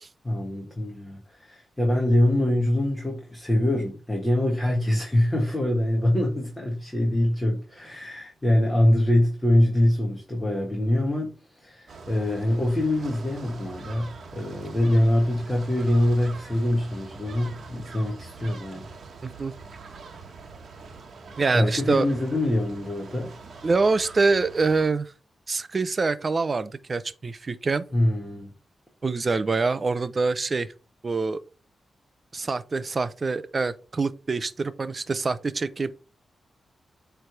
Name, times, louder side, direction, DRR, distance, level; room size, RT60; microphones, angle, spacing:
voice 1, 0.2-18.9 21.5-23.3 27.9-28.5, left 1 dB, 15° left, 1.6 m, -24 dB
sound 1, 11.9-24.9, right 4 dB, 60° right, 1.2 m, -44 dB
voice 2, 19.2-19.5 21.4-22.1 23.6-25.1 25.5-27.8 29.0-30.7 31.0-31.4 32.3-35.9, right 4 dB, 35° right, 0.6 m, -25 dB
8.8 x 3.4 x 4.6 m
wide cardioid pair, 130°, 0 cm